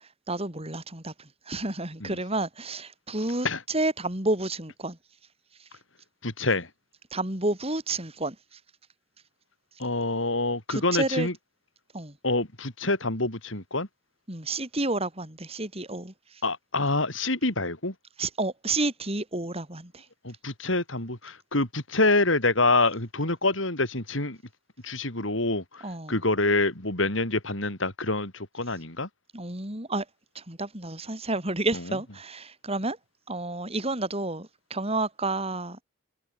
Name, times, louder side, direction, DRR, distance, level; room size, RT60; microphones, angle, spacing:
voice 1, 0.3-1.1 1.5-5.0 7.1-8.3 10.7-11.3 11.9-12.1 14.3-16.1 18.2-20.0 25.8-26.1 29.3-30.0 30.3-33.0 33.3-35.8, right 2 dB, 30° right, 5.3 m, -30 dB
voice 2, 6.2-6.7 9.8-11.3 12.2-13.9 16.4-17.9 20.2-24.4 24.8-29.1 31.7-31.8, left 2 dB, 70° left, 5.8 m, -26 dB
head